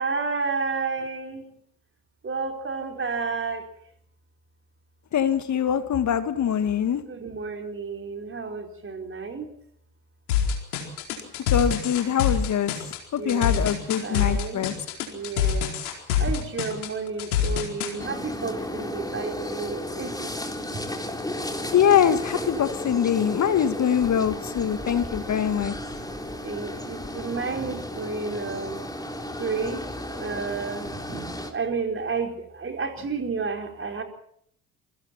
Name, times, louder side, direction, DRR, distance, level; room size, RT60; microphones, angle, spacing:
voice 1, 0.0-1.4 2.2-3.6 7.1-9.5 13.2-13.7 14.0-14.8 15.1-15.7 16.2-20.3 26.4-28.8 29.3-29.8 30.1-34.0, right 4 dB, 30° right, 4 dB, 4.8 m, -31 dB
voice 2, 5.1-7.0 11.5-12.7 13.1-14.7 21.7-25.7, left 9 dB, 40° left, 10 dB, 2.0 m, -23 dB
sound 1, 10.3-17.9, left 8 dB, 75° left, 4.5 m, -25 dB
sound 2, 18.0-31.5, left 1 dB, 10° left, 3.8 m, -34 dB
27.5 x 24.0 x 4.5 m, 0.67 s
figure-of-eight pair, 55°, 44 cm